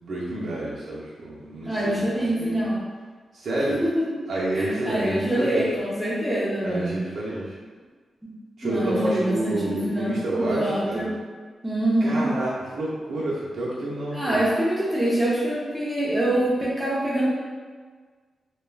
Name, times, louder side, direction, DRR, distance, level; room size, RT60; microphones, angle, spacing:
voice 1, 0.0-2.6 3.3-3.8 4.3-5.7 6.6-7.6 8.6-11.1 12.0-14.4, right 1 dB, 65° right, -7 dB, 0.6 m, -29 dB
voice 2, 1.6-2.8 3.7-4.0 4.5-7.0 8.2-8.3 8.6-11.1 11.6-12.3 14.1-17.3, right 1 dB, 5° right, -7 dB, 0.6 m, -25 dB
2.3 x 2.2 x 3.3 m, 1.5 s
wide cardioid pair, 170°, 0 cm